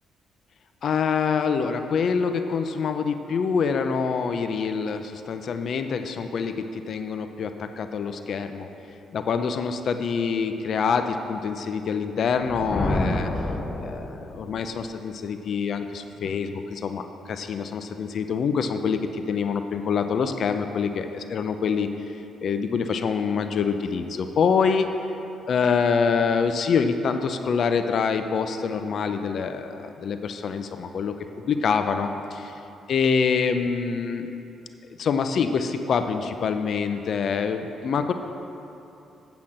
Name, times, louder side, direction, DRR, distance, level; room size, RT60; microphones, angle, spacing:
voice 1, 0.8-8.7 9.1-13.3 13.8-22.2 22.4-24.9 25.5-31.2 31.5-32.5 32.9-34.3 35.0-38.1, left 6 dB, 60° left, 8 dB, 0.6 m, -25 dB
Thunder, 12.4-14.6, left 2 dB, 20° left, 0.9 m, -28 dB
8.7 x 5.8 x 7.4 m, 2.9 s
cardioid pair, 90°, 0 cm